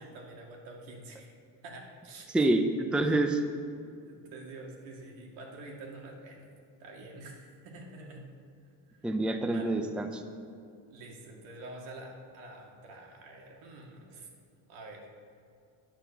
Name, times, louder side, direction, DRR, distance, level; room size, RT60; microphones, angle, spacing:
voice 1, 0.0-1.3 1.6-2.5 3.0-3.1 4.0-6.5 6.8-8.3 8.9-9.1 9.5-9.8 10.9-14.3 14.7-15.1, right 2 dB, 85° right, 0 dB, 2.3 m, -47 dB
voice 2, 2.3-3.4 9.0-10.2, right 2 dB, ahead, 7 dB, 0.5 m, -27 dB
10.0 x 9.2 x 5.7 m, 2.5 s
cardioid pair, 130°, 45 cm